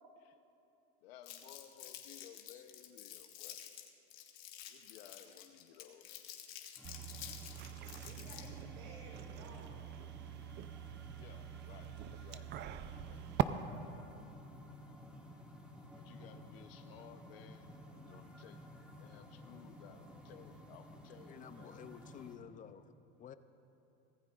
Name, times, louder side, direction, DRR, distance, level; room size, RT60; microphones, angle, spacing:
voice 1, 1.0-3.6 4.7-6.4 11.1-12.5 12.9-13.3 15.9-21.7, left 9 dB, 85° left, 7 dB, 0.8 m, -58 dB
Crumpling crinkling, 1.2-8.6, left 11 dB, 70° left, 1.8 m, -50 dB
sound 1, 6.8-22.3, left 1 dB, 5° right, 1.6 m, -54 dB
sound 2, 6.8-13.4, right 13 dB, 40° right, 0.5 m, -42 dB
voice 2, 8.1-9.9 13.9-14.2, right 2 dB, 75° right, -1 dB, 3.8 m, -55 dB
voice 3, 21.3-23.3, left 8 dB, 25° left, 12 dB, 0.5 m, -52 dB
24.5 x 15.0 x 2.5 m, 2.9 s
supercardioid pair, 120°, 29 cm